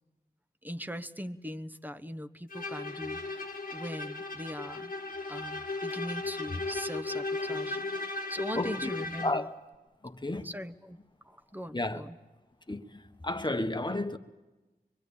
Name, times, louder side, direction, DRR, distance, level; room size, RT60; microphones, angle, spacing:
voice 1, 0.6-4.9 5.3-9.5 10.4-11.0 11.2-12.2, equal, 10° right, 1.1 m, -40 dB
Bowed string instrument, 2.5-9.5, left 3 dB, 60° left, 1.6 m, -36 dB
voice 2, 8.6-8.9 9.2-9.5 10.0-10.5 11.7-12.0 12.7-14.2, left 2 dB, 25° left, 1.3 m, -32 dB
24.0 x 23.5 x 8.7 m
wide cardioid pair, 50°, 17 cm